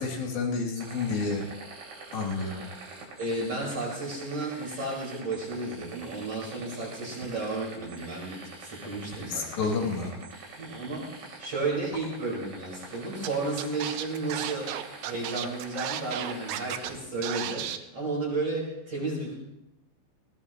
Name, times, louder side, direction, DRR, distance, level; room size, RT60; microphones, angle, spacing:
voice 1, 0.0-1.4 2.1-2.7 9.3-10.1, left 4 dB, 70° left, 0 dB, 5.0 m, -30 dB
sound 1, 0.8-17.0, right 3 dB, 55° right, 5.5 m, -45 dB
voice 2, 3.2-10.0 10.6-14.7 15.0-19.3, right 2 dB, 35° right, -7 dB, 5.7 m, -33 dB
Scratching (performance technique), 13.2-13.3 13.6-16.9 17.2-17.8, right 12 dB, 75° right, 2.3 m, -34 dB
21.5 x 17.5 x 3.1 m, 0.89 s
omnidirectional pair, 5.1 m